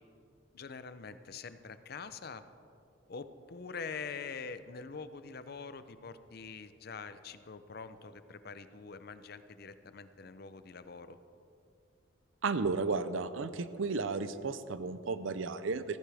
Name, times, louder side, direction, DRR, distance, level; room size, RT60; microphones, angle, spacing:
voice 1, 0.5-2.4 3.1-11.2, left 5 dB, 50° left, 12 dB, 0.6 m, -45 dB
voice 2, 12.4-16.0, right 4 dB, 80° right, 12 dB, 0.6 m, -33 dB
15.5 x 14.0 x 3.5 m, 2.5 s
head